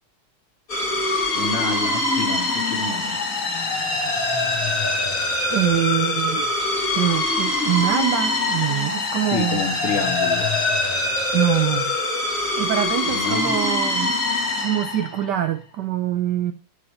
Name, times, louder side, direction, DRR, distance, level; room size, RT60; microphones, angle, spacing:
sound 1, 0.7-15.5, left 2 dB, 40° left, 2.7 m, -23 dB
voice 1, 1.3-3.2 9.3-10.5 13.0-13.6, left 5 dB, 85° left, 2.8 m, -28 dB
voice 2, 5.5-6.5 6.9-9.6 11.3-11.9 12.6-14.2 14.6-16.5, right 12 dB, 70° right, 1.0 m, -24 dB
8.6 x 5.1 x 5.5 m
omnidirectional pair, 2.4 m